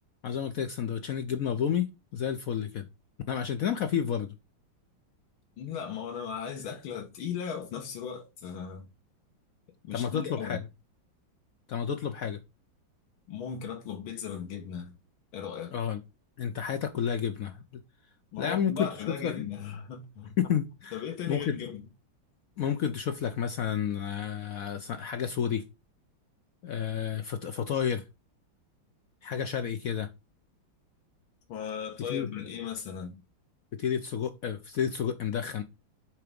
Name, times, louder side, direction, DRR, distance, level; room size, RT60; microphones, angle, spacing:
voice 1, 0.2-2.9 3.3-4.4 9.9-10.6 11.7-12.4 15.7-16.0 16.4-17.8 18.4-19.5 20.4-21.0 21.3-21.6 22.6-25.6 26.6-28.0 29.2-30.1 32.1-32.3 33.7-35.6, left 8 dB, 65° left, 0.8 m, -30 dB
voice 2, 5.6-8.9 9.8-10.6 13.3-15.0 15.3-15.7 18.3-20.3 20.9-21.8 31.5-33.2, left 7 dB, 85° left, 2.1 m, -37 dB
7.7 x 3.5 x 5.1 m
omnidirectional pair, 2.2 m